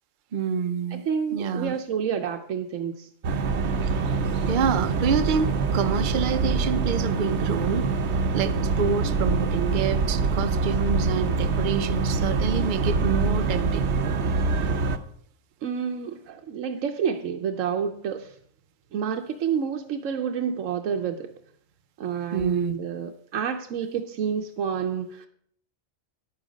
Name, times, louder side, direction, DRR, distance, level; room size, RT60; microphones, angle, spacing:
voice 1, 0.3-1.0 1.3-1.7 3.8-4.0 4.5-7.9 8.3-13.9 22.3-22.8, right 6 dB, 50° right, 9 dB, 0.7 m, -27 dB
voice 2, 0.9-3.1 15.6-18.3 18.9-21.3 22.0-25.3, right 7 dB, 90° right, 4 dB, 1.1 m, -29 dB
sound 1, 3.2-15.0, right 4 dB, 65° right, 1.0 m, -25 dB
10.5 x 9.0 x 5.0 m, 0.63 s
omnidirectional pair, 1.3 m